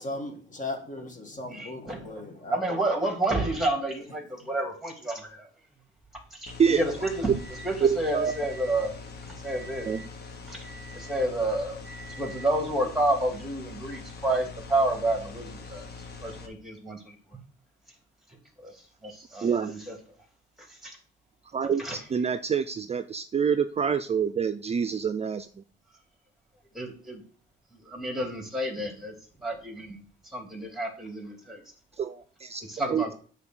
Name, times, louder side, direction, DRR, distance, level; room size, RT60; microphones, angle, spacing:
voice 1, 0.0-2.6, left 2 dB, 40° left, 4 dB, 1.8 m, -37 dB
voice 2, 1.5-2.0 2.5-5.5 6.3-8.9 9.3-10.0 10.5-15.9 16.2-17.2 18.6-20.0 20.6-21.0 21.8-22.0 26.7-27.2 27.7-31.6 32.7-33.1, right 1 dB, ahead, 3 dB, 2.7 m, -30 dB
sound 1, 6.5-16.5, left 4 dB, 55° left, 1.5 m, -43 dB
voice 3, 7.8-8.3 9.9-10.0 19.4-19.7 21.5-25.6 32.0-32.6 32.9-33.0, right 7 dB, 30° right, 9 dB, 0.5 m, -26 dB
8.0 x 4.0 x 6.2 m, 0.43 s
cardioid pair, 90°, 20 cm